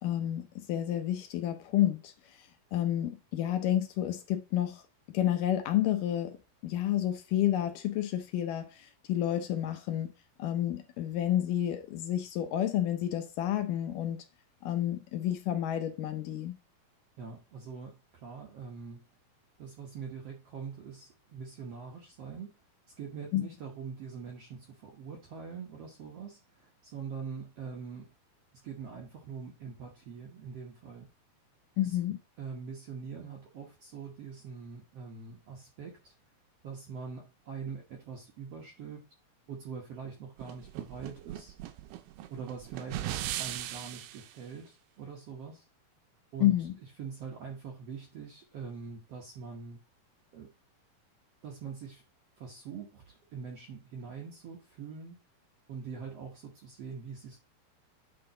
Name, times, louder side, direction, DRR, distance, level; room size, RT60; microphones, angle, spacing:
voice 1, 0.0-2.1 2.7-4.8 5.1-6.3 6.6-10.1 10.4-14.2 14.6-16.5 23.3-23.4 31.8-32.2 46.4-46.7, left 12 dB, 75° left, 2.1 m, -30 dB
voice 2, 17.2-19.1 19.6-22.5 23.0-28.1 28.6-31.1 31.8-32.0 32.4-36.1 36.6-39.0 39.5-41.5 42.3-45.7 46.3-46.6 47.0-49.8 50.3-50.5 51.4-52.0 52.4-55.2 55.7-57.4, right 5 dB, 65° right, 1.5 m, -43 dB
sound 1, 40.4-44.3, right 13 dB, 85° right, 2.4 m, -38 dB
8.7 x 3.9 x 3.8 m
omnidirectional pair, 4.2 m